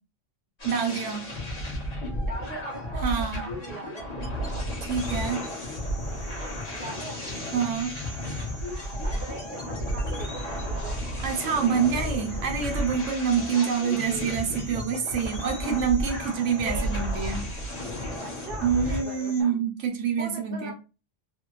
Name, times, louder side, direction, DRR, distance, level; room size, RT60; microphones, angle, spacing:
sound 1, 0.6-19.0, equal, 35° left, 1.2 m, -33 dB
voice 1, 0.6-1.2 3.0-3.4 4.8-5.4 7.5-8.0 11.2-17.5 18.6-20.7, right 6 dB, 80° right, 3 dB, 1.0 m, -26 dB
voice 2, 2.2-4.1 6.7-7.2 9.0-11.0 13.5-14.3 16.6-17.0 18.2-19.6 20.2-20.7, right 2 dB, 55° right, 0 dB, 0.9 m, -40 dB
sound 2, 5.0-19.4, left 1 dB, 75° left, 1.2 m, -46 dB
3.3 x 2.1 x 2.9 m, 0.31 s
omnidirectional pair, 1.2 m